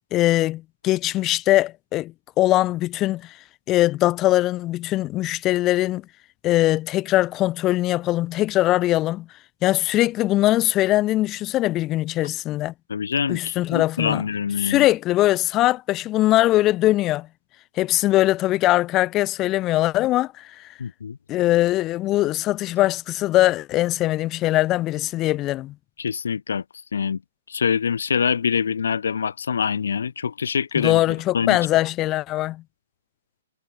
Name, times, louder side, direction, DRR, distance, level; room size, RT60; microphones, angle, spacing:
voice 1, 0.1-3.3 3.7-6.0 6.4-9.3 9.6-12.7 13.3-14.2 14.6-17.3 17.8-20.7 21.3-25.7 30.7-32.6, left 16 dB, 25° left, 0.4 m, -21 dB
voice 2, 12.9-14.9 20.8-21.2 26.0-26.6 26.9-27.2 27.5-31.0 31.3-31.6, left 6 dB, 80° left, 0.4 m, -25 dB
hypercardioid pair, 150°, 0 cm